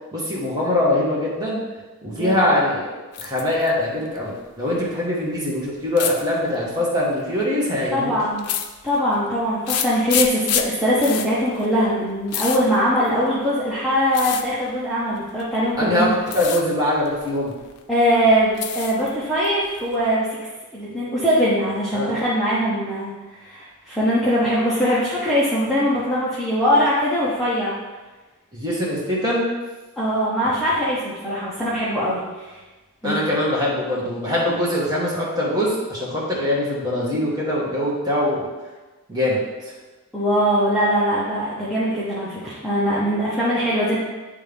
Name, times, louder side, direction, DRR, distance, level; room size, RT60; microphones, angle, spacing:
voice 1, 0.1-1.6 2.0-2.9 3.2-8.1 15.8-17.5 21.9-22.1 28.5-29.4 33.0-38.5 39.1-39.4, left 1 dB, 15° right, -6 dB, 1.5 m, -22 dB
voice 2, 2.1-2.5 7.9-8.5 8.8-16.1 17.9-20.4 20.7-27.8 30.0-32.6 33.0-33.2 40.1-44.0, equal, ahead, -10 dB, 0.9 m, -21 dB
sound 1, 3.1-3.7 4.0-4.7 6.0-6.2 7.1-7.5 8.4-9.2 9.7-13.5 14.1-14.5 15.4-15.8 16.2-16.6 17.0-17.8 18.2-19.1 19.4-20.1, left 9 dB, 85° left, 0.5 m, -28 dB
9.4 x 3.4 x 3.5 m, 1.2 s
head